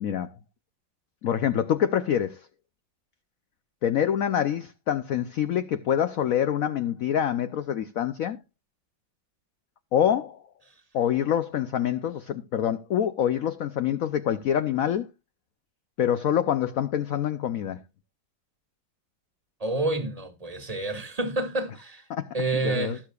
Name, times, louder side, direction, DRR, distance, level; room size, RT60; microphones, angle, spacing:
voice 1, 0.0-0.3 1.2-2.5 3.8-8.4 9.9-10.4 10.9-15.1 16.0-17.8 22.1-22.3 22.6-23.0, left 9 dB, 65° left, 0.8 m, -26 dB
voice 2, 19.6-22.0 22.3-23.0, right 2 dB, 20° right, 1.7 m, -28 dB
19.0 x 6.6 x 2.4 m
omnidirectional pair, 2.1 m